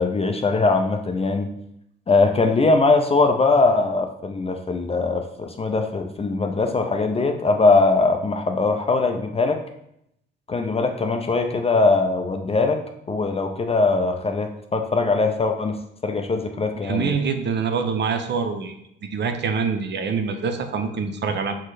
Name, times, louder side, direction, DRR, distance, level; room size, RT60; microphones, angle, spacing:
voice 1, 0.0-1.5 2.1-9.6 10.5-17.1, left 3 dB, 20° left, 5 dB, 0.4 m, -21 dB
voice 2, 16.7-18.8 19.0-21.5, right 5 dB, 35° right, 7 dB, 0.6 m, -25 dB
6.0 x 2.2 x 4.1 m, 0.77 s
figure-of-eight pair, 50°, 30 cm